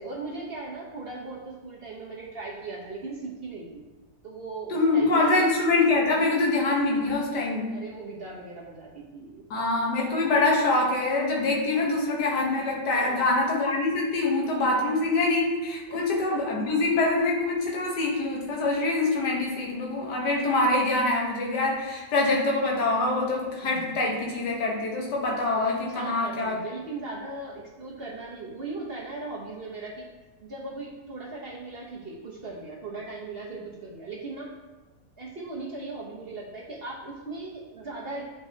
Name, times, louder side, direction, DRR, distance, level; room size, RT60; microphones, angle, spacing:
voice 1, 0.0-3.7 4.2-5.5 7.7-9.4 12.9-13.3 15.9-16.1 16.3-16.4 23.6-24.0 25.6-30.0 30.4-34.5 35.2-38.2, right 3 dB, 40° right, -3 dB, 1.1 m, -38 dB
voice 2, 4.7-7.8 9.5-26.6, left 2 dB, 85° left, -2 dB, 1.8 m, -25 dB
8.2 x 5.4 x 2.8 m, 1.2 s
omnidirectional pair, 1.8 m